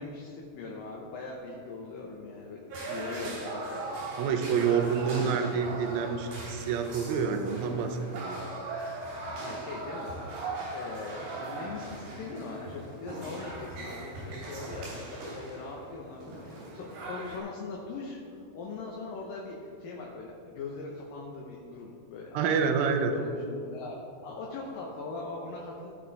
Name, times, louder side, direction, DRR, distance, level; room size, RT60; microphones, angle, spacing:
voice 1, 0.0-4.3 4.7-5.6 9.3-22.6 22.9-23.9 24.2-25.9, left 3 dB, 70° left, -1 dB, 2.3 m, -41 dB
sound 1, 2.7-17.4, right 2 dB, 90° right, 4.8 m, -39 dB
voice 2, 4.2-8.4 8.9-9.0 22.3-23.1, right 6 dB, 75° right, 6 dB, 2.4 m, -28 dB
16.5 x 6.1 x 4.1 m, 2.5 s
omnidirectional pair, 4.7 m